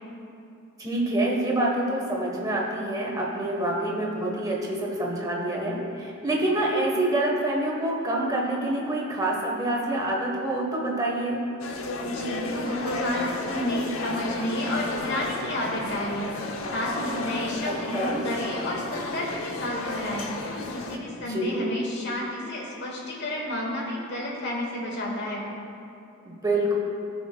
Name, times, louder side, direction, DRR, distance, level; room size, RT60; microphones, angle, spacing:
voice 1, 0.8-11.4 17.7-18.2 21.3-21.6 26.2-26.7, right 1 dB, 20° right, -2 dB, 1.2 m, -27 dB
sound 1, 11.6-21.0, left 2 dB, 85° left, 0.8 m, -33 dB
voice 2, 12.0-25.4, left 1 dB, 55° left, -2 dB, 1.7 m, -31 dB
17.5 x 5.9 x 2.3 m, 2.6 s
head